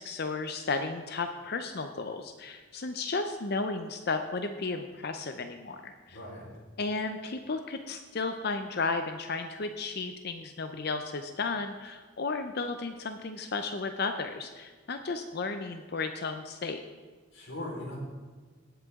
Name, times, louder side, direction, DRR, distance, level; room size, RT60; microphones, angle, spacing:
voice 1, 0.0-6.2 6.8-16.8, left 3 dB, 50° left, 7 dB, 0.6 m, -34 dB
voice 2, 6.1-6.5 17.3-18.0, left 1 dB, 65° left, -3 dB, 4.2 m, -39 dB
18.0 x 8.1 x 3.6 m, 1.4 s
head